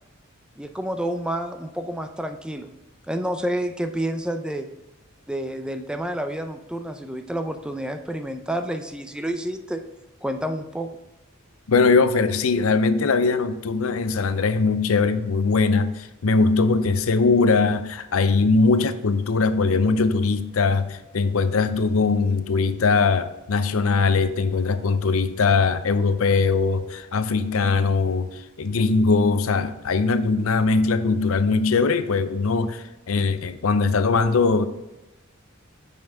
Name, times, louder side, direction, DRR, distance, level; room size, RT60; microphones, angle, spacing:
voice 1, 0.6-2.7 3.1-4.7 5.3-9.8 10.2-11.0, right 1 dB, 5° right, 0.5 m, -29 dB
voice 2, 11.7-28.3 28.6-34.7, left 4 dB, 75° left, 0.5 m, -21 dB
9.3 x 5.4 x 3.5 m
head